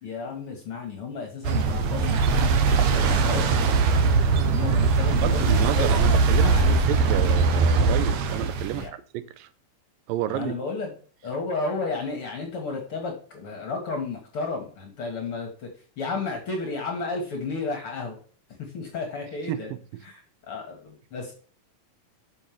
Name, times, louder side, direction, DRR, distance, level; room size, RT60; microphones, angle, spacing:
voice 1, 0.0-2.5 2.8-3.7 4.5-5.9 6.3-6.8 8.7-8.9 10.3-10.9 11.2-15.7 16.0-18.2 18.6-19.7 20.0-21.3, left 4 dB, 55° left, 1.7 m, -33 dB
sound 1, 1.5-8.9, right 4 dB, 70° right, 1.7 m, -21 dB
voice 2, 5.2-9.5 10.1-10.5 19.5-20.0, right 13 dB, 85° right, 2.3 m, -31 dB
6.4 x 5.5 x 5.8 m
omnidirectional pair, 4.0 m